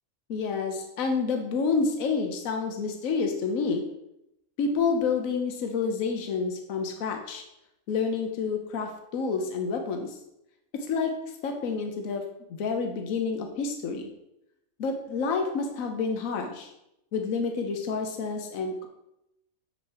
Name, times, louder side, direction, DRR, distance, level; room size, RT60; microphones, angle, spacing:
voice 1, 0.3-3.8 4.6-7.4 7.9-10.2 10.7-11.2 11.4-12.2 12.5-14.1 14.8-16.7 17.1-18.9, left 5 dB, 75° left, 4 dB, 1.3 m, -29 dB
7.4 x 5.7 x 4.3 m, 0.84 s
omnidirectional pair, 1.5 m